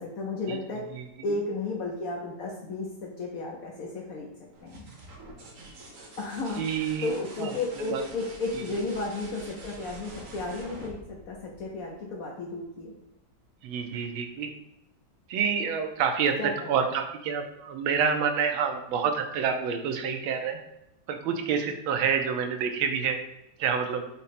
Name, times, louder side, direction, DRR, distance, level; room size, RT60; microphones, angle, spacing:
voice 1, 0.0-4.3 4.6-4.8 6.2-12.9 16.4-16.9, left 3 dB, 85° left, -2 dB, 0.7 m, -33 dB
sound 1, 4.5-12.1 13.9-14.5, right 2 dB, 55° right, 0.9 m, -46 dB
voice 2, 6.6-7.1 7.4-7.5 7.9-8.0 13.6-14.5 15.3-20.6 21.1-23.2 23.6-24.0, right 6 dB, 85° right, 6 dB, 1.4 m, -28 dB
5.2 x 2.0 x 4.1 m, 0.87 s
omnidirectional pair, 2.2 m